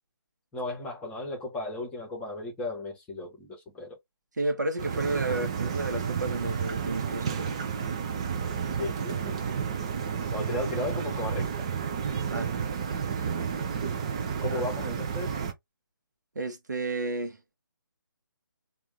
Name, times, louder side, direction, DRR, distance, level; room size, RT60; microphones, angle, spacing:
voice 1, 0.5-4.0 8.8-9.5 10.3-11.7 14.4-15.4, left 2 dB, 10° left, 1.0 m, -35 dB
voice 2, 4.4-7.6 12.2-12.6 14.5-14.6 16.3-17.4, right 2 dB, 55° right, 1.0 m, -32 dB
sound 1, 4.8-15.5, right 6 dB, 15° right, 0.3 m, -31 dB
3.4 x 2.4 x 3.5 m
figure-of-eight pair, 145°, 12 cm